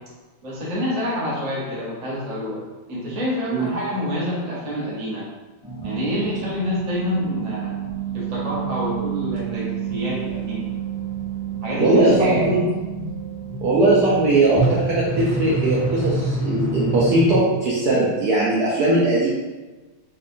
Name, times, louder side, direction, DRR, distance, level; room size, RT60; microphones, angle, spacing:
voice 1, 0.4-2.6 2.9-5.2 5.8-7.7 8.1-10.6 11.6-12.7 13.0-13.1, left 1 dB, 30° right, -7 dB, 0.7 m, -27 dB
sound 1, 5.6-17.4, right 4 dB, 5° left, 0.7 m, -28 dB
voice 2, 11.8-12.6 13.6-19.3, right 2 dB, 70° right, -6 dB, 1.0 m, -19 dB
4.3 x 2.4 x 2.6 m, 1.2 s
omnidirectional pair, 2.1 m